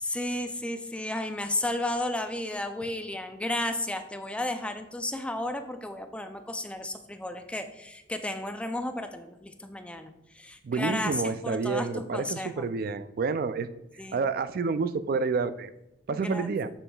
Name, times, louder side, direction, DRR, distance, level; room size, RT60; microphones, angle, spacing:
voice 1, 0.0-12.7 14.0-14.2 16.1-16.5, left 1 dB, 5° left, 7 dB, 0.4 m, -33 dB
voice 2, 10.6-13.7 14.1-15.7 16.1-16.7, right 4 dB, 55° right, 13 dB, 0.3 m, -29 dB
7.1 x 7.0 x 2.3 m, 0.89 s
head